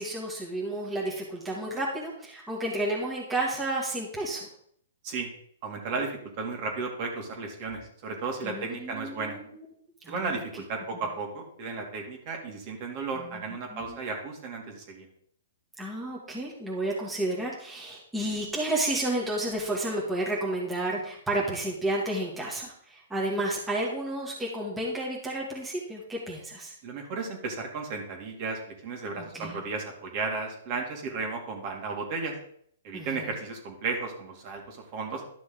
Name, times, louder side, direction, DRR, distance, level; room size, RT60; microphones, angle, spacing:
voice 1, 0.0-4.5 8.4-9.6 10.0-10.4 13.1-13.4 13.7-14.0 15.8-26.7 29.2-29.6 32.9-33.3, right 1 dB, 5° right, -5 dB, 2.2 m, -31 dB
voice 2, 5.6-6.1 6.4-9.4 10.1-15.1 26.8-32.3 32.8-35.2, right 4 dB, 40° right, 1 dB, 2.6 m, -34 dB
12.0 x 6.1 x 3.9 m, 0.65 s
hypercardioid pair, 145°, 0 cm